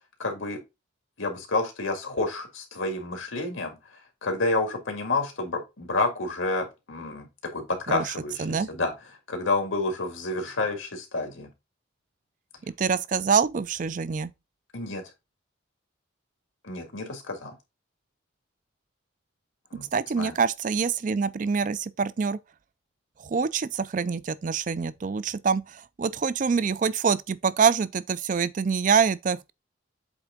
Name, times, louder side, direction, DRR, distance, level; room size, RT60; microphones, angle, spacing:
voice 1, 0.2-0.6 1.2-3.7 4.2-8.9 9.3-11.5 14.7-15.0 16.6-17.6 19.7-19.9 20.2-20.3, left 2 dB, 90° left, 1.9 m, -29 dB
voice 2, 12.8-14.3 19.9-22.4 23.2-29.5, right 5 dB, 40° right, 0.4 m, -25 dB
7.9 x 3.6 x 3.6 m
head